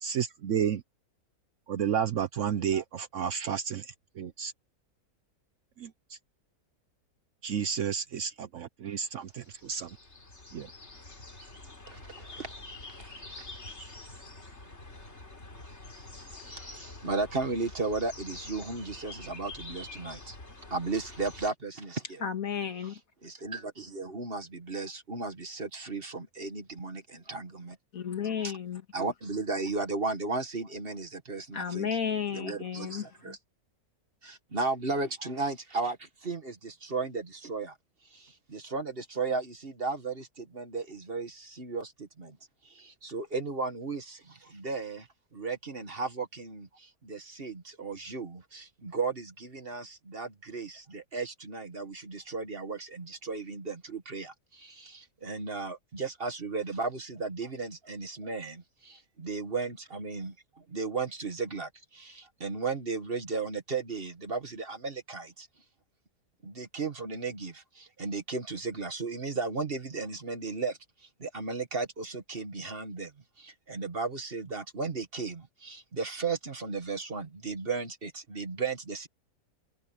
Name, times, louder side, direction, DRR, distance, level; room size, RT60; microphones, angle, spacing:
voice 1, 0.0-0.8 1.7-4.5 5.8-6.2 7.4-10.0 10.5-10.7, right 8 dB, 60° right, 1.0 m, -31 dB
sound 1, 9.3-21.5, left 2 dB, 45° left, 3.9 m, -46 dB
voice 2, 11.9-12.5 13.3-13.4 16.4-20.4 20.7-22.2 23.2-27.7 28.9-31.9 32.3-33.4 34.2-37.7 38.1-42.4 42.6-45.1 45.3-60.3 60.7-65.5 66.4-70.8 71.2-73.1 73.4-79.1, right 4 dB, 40° right, 1.8 m, -35 dB
voice 3, 22.2-23.0 27.9-28.8 31.5-33.3, left 7 dB, 65° left, 2.3 m, -33 dB
omnidirectional pair, 1.6 m